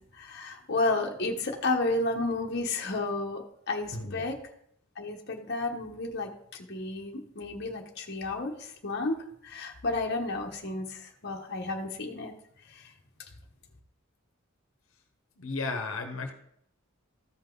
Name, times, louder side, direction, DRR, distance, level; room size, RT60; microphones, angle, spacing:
voice 1, 0.1-4.4 5.0-12.3 12.7-12.9, left 2 dB, 55° left, 0 dB, 1.2 m, -32 dB
voice 2, 3.9-4.3 15.4-16.3, left 3 dB, 75° left, 5 dB, 1.2 m, -34 dB
14.0 x 5.4 x 3.9 m, 0.70 s
head